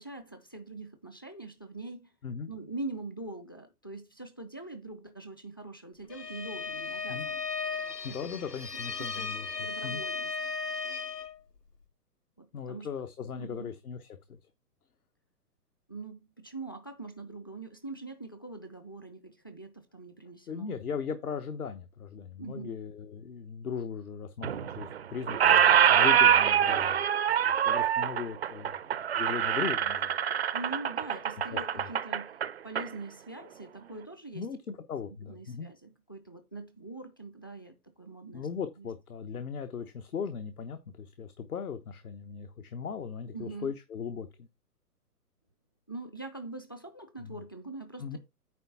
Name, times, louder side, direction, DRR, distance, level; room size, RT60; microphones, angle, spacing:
voice 1, 0.0-2.1 2.5-7.4 7.8-8.2 9.0-10.3 12.4-12.9 13.4-13.7 15.9-20.7 22.4-22.8 30.5-32.4 32.6-34.5 35.3-38.5 38.8-38.9 43.3-43.7 45.9-48.2, right 2 dB, 15° left, 0.4 m, -43 dB
Bowed string instrument, 6.1-11.4, left 4 dB, 80° left, 2.3 m, -36 dB
voice 2, 8.0-10.0 12.5-14.4 20.5-27.1 27.4-30.2 31.3-31.9 34.3-35.7 38.3-44.5 47.2-47.4 48.0-48.2, left 6 dB, 65° left, 1.1 m, -38 dB
Squeak, 24.4-25.0 25.3-32.9, right 9 dB, 45° right, 0.4 m, -25 dB
9.1 x 3.6 x 5.7 m
figure-of-eight pair, 130°, 48 cm